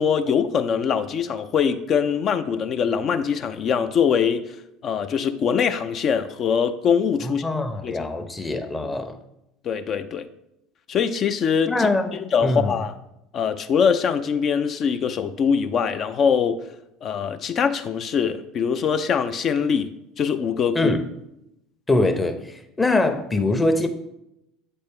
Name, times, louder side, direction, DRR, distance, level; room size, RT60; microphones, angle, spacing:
voice 1, 0.0-4.6 4.8-7.5 7.8-8.1 9.6-10.3 10.9-11.9 12.1-12.9 13.3-16.7 17.0-21.0, left 7 dB, 40° left, 0.5 m, -23 dB
voice 2, 7.2-9.2 11.7-12.8 20.7-21.0 21.9-23.9, left 2 dB, 15° left, 0.8 m, -23 dB
7.9 x 4.3 x 3.5 m
figure-of-eight pair, 65°, 0 cm